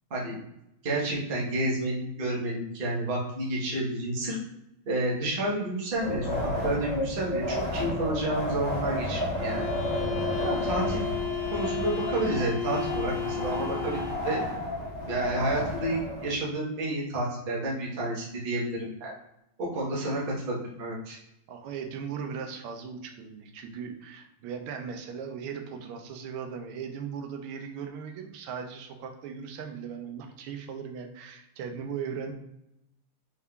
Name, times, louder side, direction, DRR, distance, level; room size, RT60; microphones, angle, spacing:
voice 1, 0.8-4.4 4.9-9.7 10.4-11.0 11.5-14.4 15.1-19.1 19.6-21.2, right 1 dB, 40° right, -4 dB, 0.7 m, -30 dB
Wind, 5.9-16.3, left 1 dB, 40° left, 0.6 m, -32 dB
sound 1, 9.3-14.3, left 10 dB, 75° left, 1.2 m, -34 dB
voice 2, 21.5-32.3, right 6 dB, 90° right, 4 dB, 1.5 m, -38 dB
4.4 x 3.6 x 2.3 m, 0.84 s
omnidirectional pair, 2.3 m